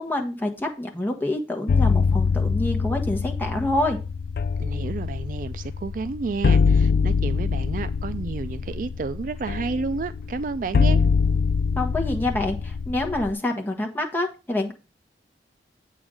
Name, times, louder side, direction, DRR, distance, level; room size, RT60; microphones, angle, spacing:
voice 1, 0.0-4.0 11.8-14.7, left 1 dB, 10° left, 1.2 m, -27 dB
sound 1, 1.7-13.3, left 5 dB, 55° left, 0.3 m, -24 dB
voice 2, 4.6-11.0, right 4 dB, 50° right, 0.3 m, -31 dB
8.0 x 3.8 x 6.2 m
head